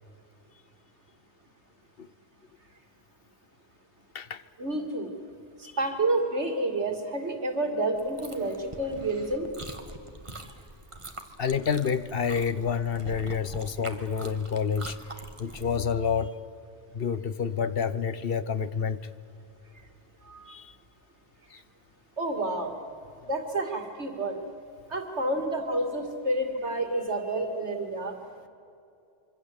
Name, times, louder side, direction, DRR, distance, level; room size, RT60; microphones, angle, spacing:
voice 1, 4.6-5.1 5.6-9.5 20.3-20.5 22.2-22.8 23.2-24.4 24.9-28.2, right 2 dB, 85° right, 5 dB, 3.0 m, -29 dB
Chewing mastication, 8.0-15.8, right 2 dB, 25° right, 1.9 m, -44 dB
voice 2, 11.4-15.0 15.4-16.3 16.9-19.0 20.5-20.7 21.5-21.6, left 6 dB, 60° left, 15 dB, 1.1 m, -28 dB
26.0 x 24.5 x 8.2 m, 2.5 s
omnidirectional pair, 1.1 m